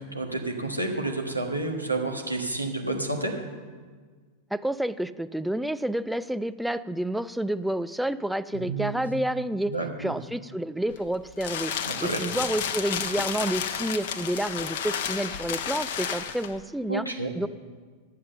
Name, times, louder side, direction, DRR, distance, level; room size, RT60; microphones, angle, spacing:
voice 1, 0.0-3.3 8.5-9.0 9.7-10.1 11.8-12.2 16.9-17.3, right 2 dB, 90° right, 0 dB, 1.4 m, -30 dB
voice 2, 4.5-9.7 10.0-11.7 12.0-17.0 17.4-17.5, right 1 dB, ahead, 14 dB, 0.3 m, -29 dB
sound 1, 10.9-16.6, left 8 dB, 55° left, 0.8 m, -32 dB
11.5 x 7.5 x 6.6 m, 1.5 s
figure-of-eight pair, 90°, 0 cm